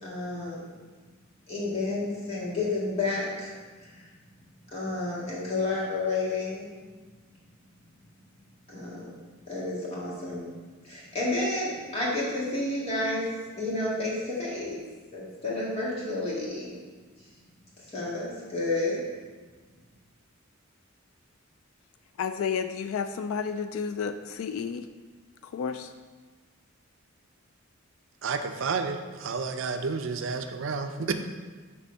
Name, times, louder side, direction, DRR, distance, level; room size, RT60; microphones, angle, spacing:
voice 1, 0.0-0.7 1.5-3.5 3.8-4.1 4.7-6.7 8.7-9.2 9.5-10.5 10.8-14.8 15.1-16.7 17.9-19.0, left 2 dB, 30° left, -6 dB, 2.0 m, -31 dB
voice 2, 22.2-24.9 25.4-25.9, left 6 dB, 80° left, 9 dB, 0.3 m, -31 dB
voice 3, 28.2-31.1, right 4 dB, 65° right, 7 dB, 0.5 m, -30 dB
6.8 x 3.5 x 6.3 m, 1.4 s
head